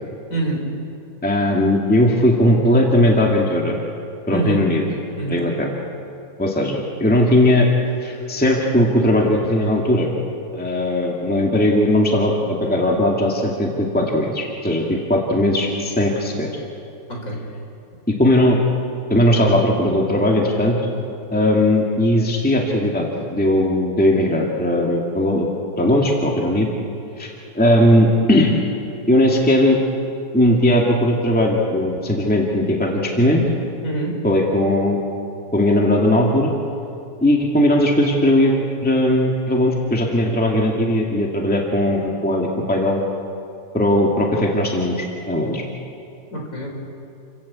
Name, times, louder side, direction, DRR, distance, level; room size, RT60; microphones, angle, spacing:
voice 1, 0.3-0.6 4.3-4.6 5.2-5.4 17.1-17.4 33.8-34.2 46.3-46.8, right 2 dB, 45° left, 0 dB, 4.7 m, -25 dB
voice 2, 1.2-3.8 4.3-4.8 5.3-5.7 6.4-7.7 8.0-10.1 10.5-16.5 18.2-18.6 19.1-20.8 21.3-25.5 25.8-26.7 27.2-28.5 29.1-29.8 30.3-33.4 34.2-35.0 35.5-36.5 37.2-38.6 38.8-43.0 43.7-45.6, left 1 dB, 5° left, -1 dB, 2.1 m, -18 dB
28.5 x 15.0 x 8.6 m, 2.6 s
omnidirectional pair, 2.0 m